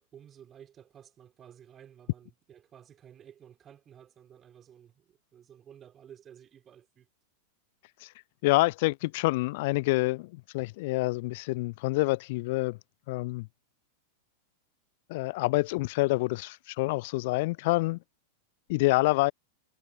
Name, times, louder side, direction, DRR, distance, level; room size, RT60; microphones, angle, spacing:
voice 1, 0.0-7.1, right 9 dB, 25° right, 3.3 m, -53 dB
voice 2, 8.4-12.8 13.1-13.5 15.1-18.0 18.7-19.3, left 22 dB, 50° left, 0.5 m, -27 dB
figure-of-eight pair, 90°, 0 cm